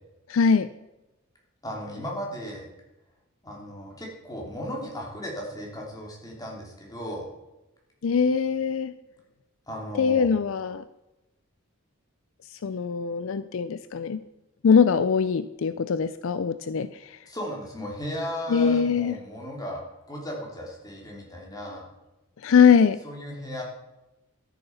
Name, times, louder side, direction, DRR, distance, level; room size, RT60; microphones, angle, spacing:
voice 1, 0.3-0.7 8.0-8.9 10.0-10.8 12.5-14.2 14.6-17.2 18.5-19.1 22.4-23.0, left 6 dB, 65° left, 13 dB, 0.4 m, -22 dB
voice 2, 1.6-2.7 3.4-7.3 9.7-10.3 17.3-19.8 20.1-21.8 23.0-23.6, equal, 15° left, -2 dB, 3.0 m, -36 dB
13.0 x 7.1 x 5.6 m, 0.99 s
head